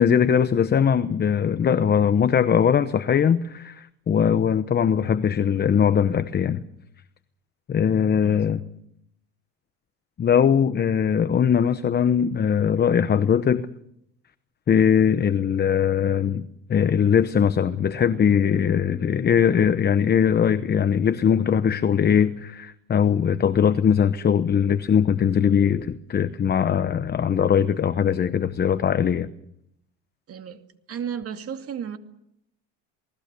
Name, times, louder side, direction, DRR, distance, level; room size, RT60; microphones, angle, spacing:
voice 1, 0.0-6.6 7.7-8.6 10.2-13.7 14.7-29.3, left 8 dB, 30° left, 0.9 m, -21 dB
voice 2, 8.2-8.7 30.3-30.6 30.9-32.0, right 8 dB, 40° right, 2.4 m, -34 dB
28.0 x 19.5 x 6.8 m
cardioid pair, 120°, 34 cm